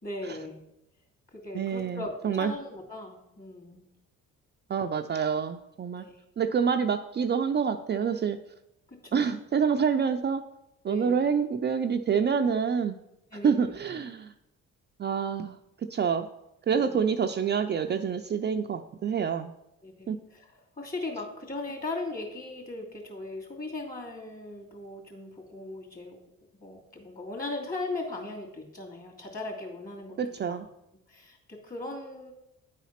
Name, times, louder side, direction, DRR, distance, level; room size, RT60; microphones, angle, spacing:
voice 1, 0.0-0.6 1.3-3.8 6.0-6.2 8.9-9.3 10.9-11.2 13.3-13.8 16.7-16.9 19.8-26.2 26.6-30.2 30.5-30.7 31.1-32.3, left 2 dB, 30° left, 1 dB, 2.7 m, -38 dB
voice 2, 1.5-2.5 4.7-6.0 6.4-8.4 9.1-10.4 10.8-13.0 13.4-14.3 15.0-15.6 15.9-16.3 16.7-19.5 20.1-20.2 30.2-30.7, right 6 dB, 35° right, 6 dB, 0.5 m, -27 dB
9.7 x 4.1 x 5.7 m, 0.84 s
cardioid pair, 90°, 30 cm